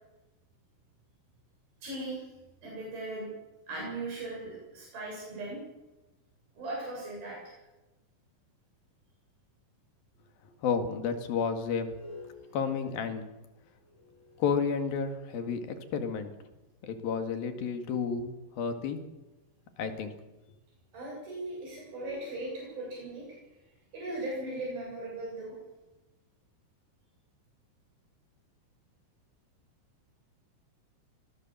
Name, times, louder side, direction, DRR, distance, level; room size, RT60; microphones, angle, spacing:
voice 1, 1.8-2.3 2.6-3.3 3.7-5.6 6.6-7.6 20.9-23.4 23.9-25.6, right 2 dB, 90° right, -3 dB, 9.5 m, -38 dB
voice 2, 10.6-11.9 12.5-13.4 14.4-16.3 16.8-19.0 19.8-20.1, left 6 dB, 90° left, 7 dB, 3.9 m, -31 dB
sound 1, 11.7-15.6 16.3-16.4 21.6-25.9, left 2 dB, 65° left, 7.9 m, -54 dB
23.0 x 19.0 x 7.6 m, 1.0 s
omnidirectional pair, 4.1 m